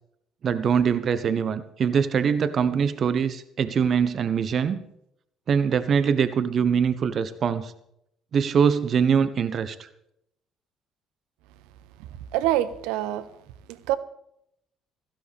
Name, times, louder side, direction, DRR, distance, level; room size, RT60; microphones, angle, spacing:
voice 1, 0.4-4.8 5.5-7.7 8.3-9.9, right 7 dB, 50° right, 13 dB, 1.0 m, -23 dB
voice 2, 12.1-13.3 13.7-14.0, right 13 dB, 70° right, 16 dB, 0.8 m, -26 dB
17.0 x 15.5 x 3.5 m, 0.76 s
figure-of-eight pair, 50°, 0 cm